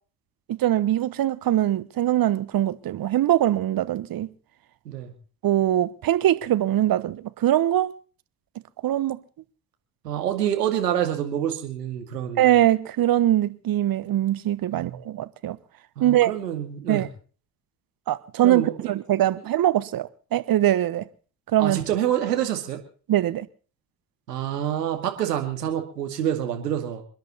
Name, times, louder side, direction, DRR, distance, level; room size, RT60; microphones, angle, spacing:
voice 1, 0.5-4.3 5.4-7.9 8.8-9.2 12.4-15.6 16.0-16.3 16.9-17.1 18.1-21.0 21.5-21.8 23.1-23.5, right 13 dB, 45° right, 1.2 m, -22 dB
voice 2, 10.0-12.5 14.7-15.1 16.0-17.1 18.4-18.9 21.6-22.8 24.3-27.0, right 10 dB, 85° right, 2.4 m, -27 dB
27.5 x 10.5 x 4.2 m
hypercardioid pair, 55°, 47 cm